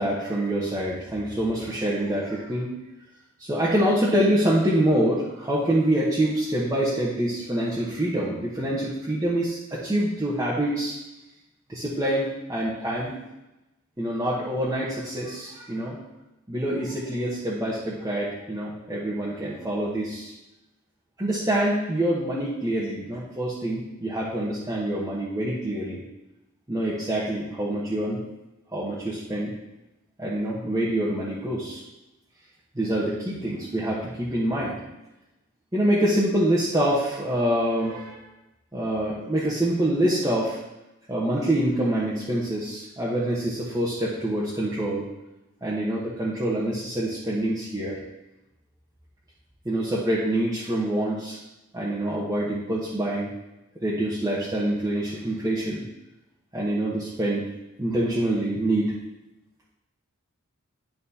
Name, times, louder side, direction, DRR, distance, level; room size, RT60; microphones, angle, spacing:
voice 1, 0.0-2.7 3.4-11.0 11.7-13.1 14.0-16.0 16.5-20.3 21.2-26.0 26.7-28.2 28.7-29.5 30.2-31.8 32.7-34.7 35.7-38.2 38.7-40.6 41.1-45.0 45.6-48.0 49.6-51.4 51.7-53.3 53.8-55.8 56.5-57.5 57.8-58.9, right 1 dB, 15° right, -8 dB, 1.0 m, -26 dB
11.0 x 4.2 x 2.8 m, 0.96 s
head